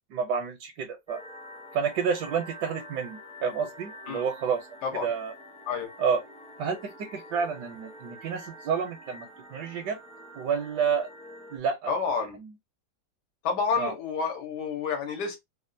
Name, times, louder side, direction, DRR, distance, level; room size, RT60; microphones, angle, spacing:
voice 1, 0.1-1.2 1.7-4.7 5.0-5.3 6.0-6.2 6.6-10.0 10.3-11.1 11.5-11.9 12.4-12.5 13.8-13.9, right 6 dB, 75° right, 1.2 m, -29 dB
sound 1, 1.1-11.6, equal, 5° left, 0.5 m, -47 dB
voice 2, 11.9-12.4 13.4-15.4, left 5 dB, 70° left, 1.5 m, -29 dB
3.4 x 2.4 x 2.5 m
omnidirectional pair, 1.9 m